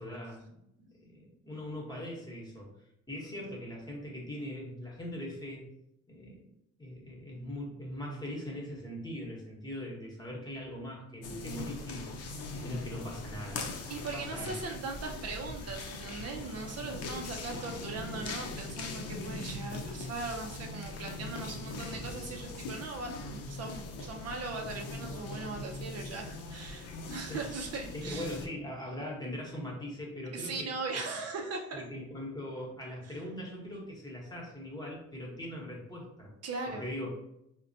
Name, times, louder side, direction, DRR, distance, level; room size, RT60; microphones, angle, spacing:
voice 1, 0.0-5.7 6.1-6.5 6.8-12.1 12.3-13.7 14.1-14.6 27.3-27.5 27.9-30.7 31.7-36.3 36.7-37.1, left 1 dB, 15° left, -2 dB, 1.1 m, -41 dB
sound 1, 11.2-28.5, left 2 dB, 55° left, 0.6 m, -41 dB
voice 2, 13.9-28.3 30.3-31.8 33.0-33.1 36.4-36.9, right 3 dB, 55° right, 2 dB, 0.5 m, -39 dB
3.9 x 2.2 x 2.6 m, 0.82 s
cardioid pair, 90°, 30 cm